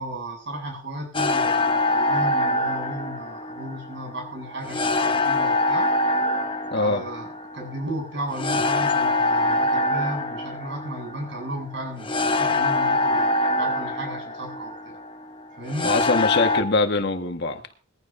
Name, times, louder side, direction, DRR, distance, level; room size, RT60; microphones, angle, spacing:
voice 1, 0.0-5.9 6.7-15.0 15.6-15.9, right 1 dB, 60° right, 2 dB, 7.8 m, -34 dB
sound 1, 1.1-16.6, left 2 dB, 25° left, 1.1 m, -24 dB
voice 2, 6.7-7.0 15.8-17.6, left 3 dB, 55° left, 6 dB, 1.6 m, -23 dB
21.0 x 15.0 x 2.7 m, 0.34 s
head